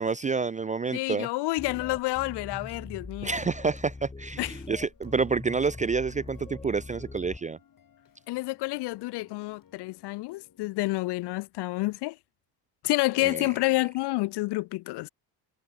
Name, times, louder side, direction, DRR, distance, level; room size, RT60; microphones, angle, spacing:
voice 1, 0.0-1.3 3.2-7.6 13.2-13.5, right 5 dB, 20° right, 0.3 m, -28 dB
voice 2, 0.9-3.4 4.4-4.6 8.3-12.2 12.8-15.1, left 20 dB, 60° left, 0.6 m, -29 dB
sound 1, 1.6-7.4, left 3 dB, 15° left, 2.0 m, -42 dB
sound 2, 4.9-10.7, left 8 dB, 45° left, 5.5 m, -59 dB
supercardioid pair, 90°, 47 cm